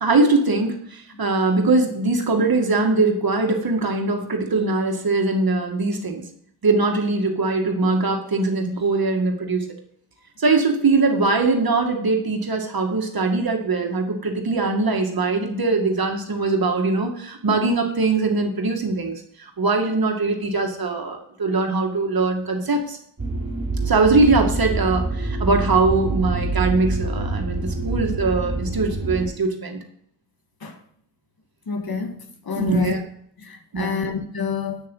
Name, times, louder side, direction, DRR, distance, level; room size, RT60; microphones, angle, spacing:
voice 1, 0.0-6.2 6.6-9.7 10.4-23.0 23.9-29.8 32.6-33.0 33.7-34.0, right 3 dB, 55° right, 2.2 m, -21 dB
sound 1, 23.2-29.3, right 3 dB, 35° right, 3.2 m, -26 dB
voice 2, 31.7-32.2 32.5-33.0 33.4-34.8, left 6 dB, 60° left, 2.0 m, -27 dB
9.2 x 6.9 x 5.5 m
cardioid pair, 70°, 42 cm